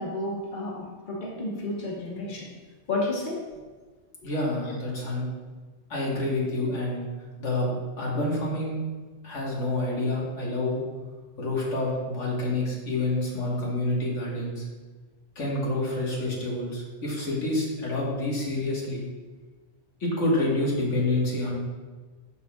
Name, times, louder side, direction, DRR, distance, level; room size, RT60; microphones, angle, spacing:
voice 1, 0.0-2.5 2.9-3.4, left 2 dB, 45° left, -3 dB, 1.2 m, -31 dB
voice 2, 4.2-5.3 5.9-7.0 7.4-8.8 9.2-10.8 11.4-14.7 15.4-19.0 20.0-21.5, left 2 dB, 85° left, -4 dB, 1.8 m, -28 dB
12.0 x 4.1 x 2.3 m, 1.4 s
omnidirectional pair, 1.2 m